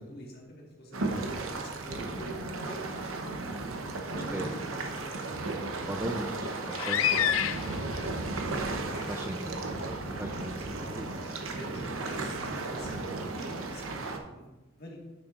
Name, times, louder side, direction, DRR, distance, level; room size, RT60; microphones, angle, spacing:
voice 1, 0.1-3.3 3.7-5.9 11.1-14.5 14.8-15.0, equal, 50° left, -1 dB, 1.7 m, -47 dB
sound 1, 0.9-14.2, right 2 dB, 90° right, 0.9 m, -35 dB
voice 2, 5.9-6.4 6.7-7.1 9.1-9.5 10.2-11.1, right 1 dB, 10° right, 3 dB, 0.5 m, -36 dB
sound 2, 6.6-8.0 9.0-9.1 9.8-9.9, left 10 dB, 90° left, 0.4 m, -28 dB
9.7 x 6.9 x 2.5 m, 1.1 s
head